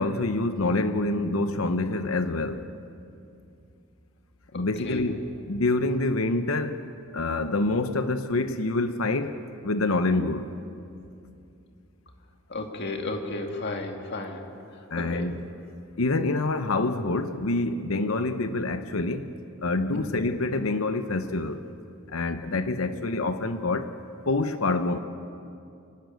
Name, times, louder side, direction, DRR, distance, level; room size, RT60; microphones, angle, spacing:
voice 1, 0.0-2.6 4.5-6.8 7.1-10.5 14.9-15.4 16.0-19.3 19.6-21.6 22.1-23.9 24.3-25.0, left 2 dB, 85° left, 0.9 m, -26 dB
voice 2, 4.5-5.0 12.5-14.4 15.0-15.3 19.9-20.1, left 2 dB, 55° left, 2.3 m, -33 dB
28.5 x 11.5 x 9.4 m
head